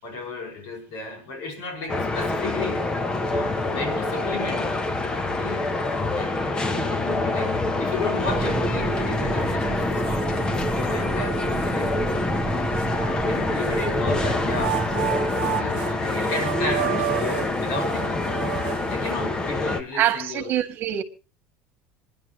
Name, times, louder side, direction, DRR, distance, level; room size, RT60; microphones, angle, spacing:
voice 1, 0.0-2.8 3.3-4.8 5.4-5.7 6.1-6.3 6.7-10.3 10.7-11.4 11.7-12.1 13.2-14.8 15.2-18.3 18.9-20.5, left 3 dB, 70° left, 5.7 m, -33 dB
sound 1, 1.9-19.8, left 2 dB, 15° left, 0.9 m, -26 dB
sound 2, 8.3-15.3, right 3 dB, 15° right, 0.9 m, -31 dB
sound 3, 9.5-9.6 10.1-11.0 11.6-11.7 12.8-13.9 14.5-19.4, right 22 dB, 90° right, 0.6 m, -32 dB
voice 2, 19.9-21.0, right 12 dB, 45° right, 1.7 m, -24 dB
27.0 x 10.5 x 3.0 m
cardioid pair, 155°, 5 cm